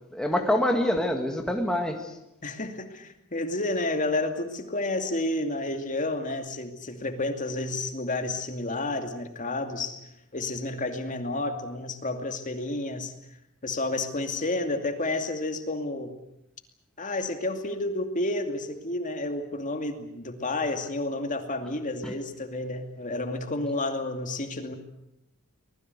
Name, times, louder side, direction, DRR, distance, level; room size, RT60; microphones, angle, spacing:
voice 1, 0.1-2.1 22.0-22.1, left 1 dB, 5° left, 3 dB, 1.8 m, -26 dB
voice 2, 2.4-10.0 10.3-13.1 13.6-16.1 17.0-24.8, left 2 dB, 35° left, 6 dB, 2.5 m, -30 dB
24.5 x 21.0 x 8.1 m, 0.81 s
head